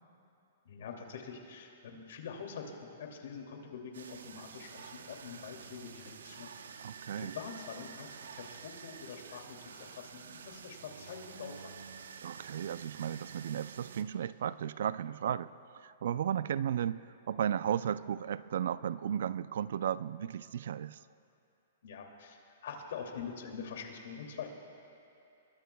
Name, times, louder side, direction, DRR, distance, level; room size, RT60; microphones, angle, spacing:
voice 1, 0.6-6.9 7.2-11.8 21.8-24.5, left 6 dB, 70° left, 2 dB, 2.5 m, -45 dB
sound 1, 3.9-14.0, right 6 dB, 85° right, 0.9 m, -49 dB
voice 2, 6.8-7.3 12.2-17.0 17.3-21.0, right 9 dB, 70° right, 17 dB, 0.4 m, -34 dB
29.0 x 21.5 x 2.3 m, 2.7 s
hypercardioid pair, 140°, 0 cm